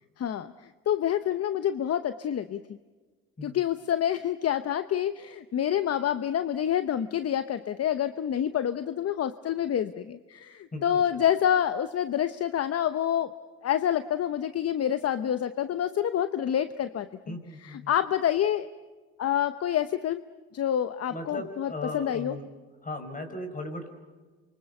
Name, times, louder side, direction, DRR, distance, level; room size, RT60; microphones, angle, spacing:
voice 1, 0.2-2.6 3.4-13.3 13.6-18.7 19.2-20.2 20.5-22.4, left 10 dB, 55° left, 12 dB, 0.9 m, -27 dB
voice 2, 17.3-17.9 21.1-22.5 22.8-23.9, left 1 dB, 25° left, 7 dB, 5.2 m, -37 dB
27.0 x 24.0 x 7.0 m, 1.3 s
cardioid pair, 90°, 30 cm